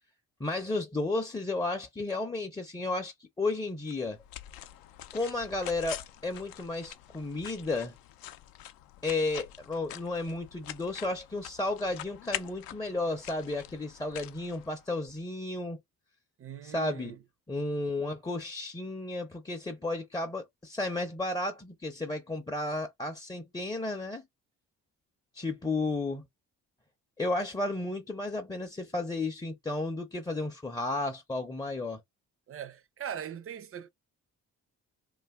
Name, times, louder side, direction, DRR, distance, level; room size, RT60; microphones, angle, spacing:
voice 1, 0.4-4.2 5.1-7.9 9.0-15.8 16.6-17.1 17.5-24.2 25.3-26.2 27.2-32.0, left 2 dB, 10° left, 0.5 m, -33 dB
sound 1, 3.9-15.2, left 12 dB, 80° left, 0.5 m, -45 dB
voice 2, 16.4-17.2 32.5-33.9, right 9 dB, 40° right, 0.5 m, -40 dB
2.4 x 2.3 x 3.4 m
supercardioid pair, 65°, 35 cm